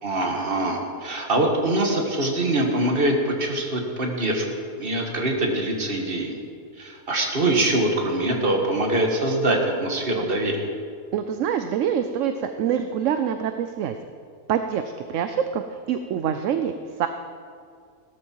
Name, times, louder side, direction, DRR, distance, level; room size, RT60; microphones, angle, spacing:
voice 1, 0.0-4.4 4.8-6.4 6.8-10.7, right 1 dB, 40° right, 2 dB, 1.9 m, -23 dB
voice 2, 11.1-14.0 14.5-16.7 17.0-17.1, right 8 dB, 65° right, 8 dB, 0.9 m, -25 dB
16.5 x 13.0 x 4.6 m, 2.3 s
omnidirectional pair, 1.6 m